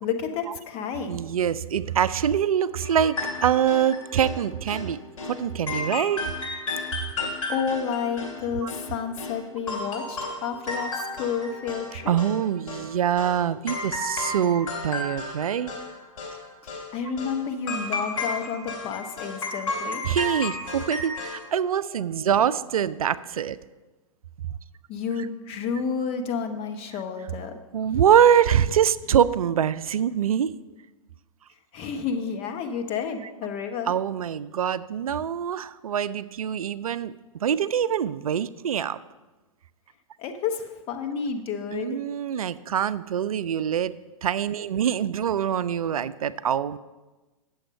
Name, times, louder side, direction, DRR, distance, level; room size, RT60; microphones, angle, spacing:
voice 1, 0.0-1.2 7.5-12.2 14.3-14.4 16.6-20.0 24.9-27.6 31.7-33.9 40.2-42.0, left 6 dB, 35° left, 5 dB, 1.1 m, -30 dB
voice 2, 1.1-5.0 5.2-6.3 7.2-7.3 8.6-8.7 12.1-15.7 20.0-23.6 27.7-30.5 33.9-37.1 37.4-39.0 41.7-43.9 44.2-46.8, right 9 dB, 80° right, 16 dB, 0.4 m, -24 dB
sound 1, 2.8-4.4 4.7-4.9 5.2-5.4 5.7-9.4 9.7-11.9 12.2-12.9 13.2-13.4 13.7-15.9 16.2-16.4 16.7-16.9 17.2-17.4 17.7-21.5, left 2 dB, 65° left, 3.1 m, -33 dB
8.9 x 7.0 x 5.3 m, 1.2 s
hypercardioid pair, 115°, 18 cm